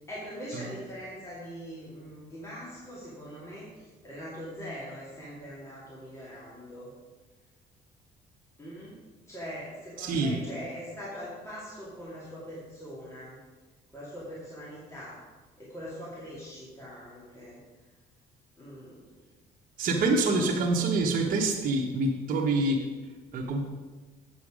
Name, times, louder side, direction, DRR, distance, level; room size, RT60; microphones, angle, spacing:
voice 1, 0.1-6.9 8.6-9.0 9.3-13.4 13.9-15.2 15.6-17.6 18.6-19.2 20.4-20.5, equal, 15° left, -8 dB, 2.4 m, -42 dB
voice 2, 10.0-10.4 19.8-22.9 23.3-23.6, right 2 dB, 55° right, -1 dB, 1.2 m, -26 dB
8.1 x 6.9 x 5.0 m, 1.3 s
cardioid pair, 110°, 17 cm